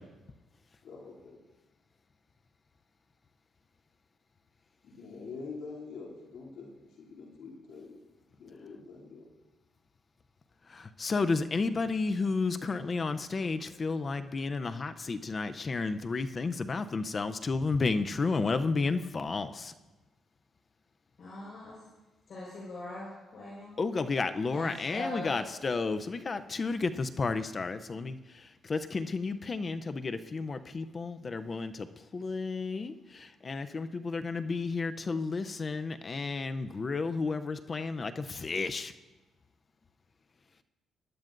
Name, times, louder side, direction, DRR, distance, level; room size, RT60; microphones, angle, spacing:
voice 1, 0.8-1.4 4.8-6.7 7.0-8.0 8.4-9.3, left 4 dB, 75° left, -4 dB, 2.9 m, -45 dB
voice 2, 11.0-19.7 23.8-28.2 28.7-31.9 32.1-32.9 33.4-38.9, left 4 dB, 35° left, 10 dB, 0.6 m, -32 dB
voice 3, 21.2-21.8 22.3-23.8 24.5-25.4, left 1 dB, 60° left, -6 dB, 4.7 m, -41 dB
19.5 x 12.0 x 2.6 m, 1.1 s
cardioid pair, 90°, 0 cm